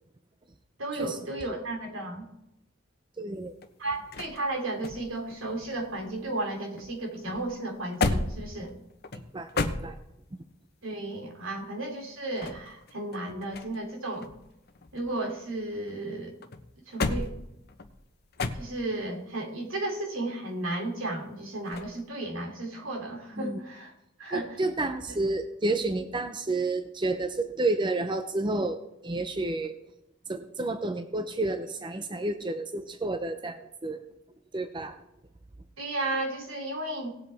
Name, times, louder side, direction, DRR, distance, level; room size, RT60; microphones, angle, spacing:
voice 1, 0.8-2.3 3.8-8.7 10.8-14.3 14.9-16.3 16.9-17.3 18.5-23.9 24.2-24.5 35.8-37.1, right 2 dB, 80° right, 1 dB, 2.9 m, -34 dB
voice 2, 3.2-3.5 9.1-10.0 23.4-23.6 24.3-29.8 30.3-34.0 34.5-35.0, right 2 dB, 25° right, 8 dB, 0.6 m, -30 dB
sound 1, 3.3-6.5 6.8-10.4 12.1-13.9 14.2-16.0 16.4-19.1 21.7-22.0, left 3 dB, 50° left, 0.8 m, -34 dB
18.5 x 7.8 x 3.4 m, 0.85 s
head